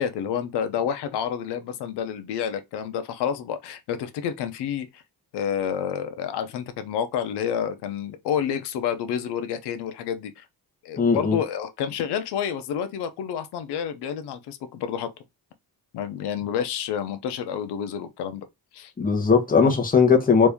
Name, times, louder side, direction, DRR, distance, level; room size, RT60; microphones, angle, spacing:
voice 1, 0.0-5.0 5.3-10.4 10.8-15.1 15.9-18.5 18.7-18.9, left 8 dB, 85° left, 0.7 m, -29 dB
voice 2, 11.0-11.4 19.0-20.5, left 5 dB, 20° left, 0.9 m, -18 dB
3.1 x 2.6 x 3.4 m
cardioid pair, 115°, 39 cm